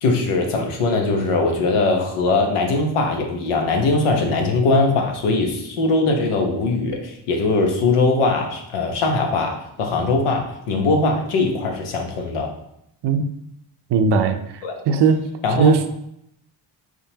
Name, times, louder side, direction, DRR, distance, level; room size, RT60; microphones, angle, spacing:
voice 1, 0.0-12.5 14.6-14.8 15.4-15.7, left 3 dB, 90° left, 2 dB, 1.0 m, -21 dB
voice 2, 13.9-14.4 14.9-15.3 15.6-15.9, right 5 dB, 55° right, 7 dB, 0.6 m, -17 dB
4.7 x 3.7 x 2.8 m, 0.76 s
cardioid pair, 75°, 50 cm